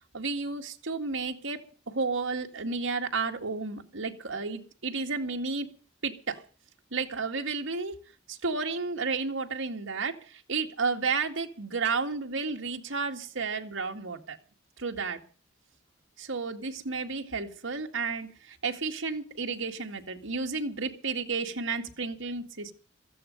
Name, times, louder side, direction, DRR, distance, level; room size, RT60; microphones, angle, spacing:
voice 1, 0.1-1.6 1.9-5.7 6.0-6.4 6.9-8.0 8.3-10.2 10.5-14.4 14.8-15.2 16.2-22.7, right 4 dB, 75° right, 3 dB, 2.1 m, -32 dB
16.5 x 14.0 x 5.3 m, 0.39 s
head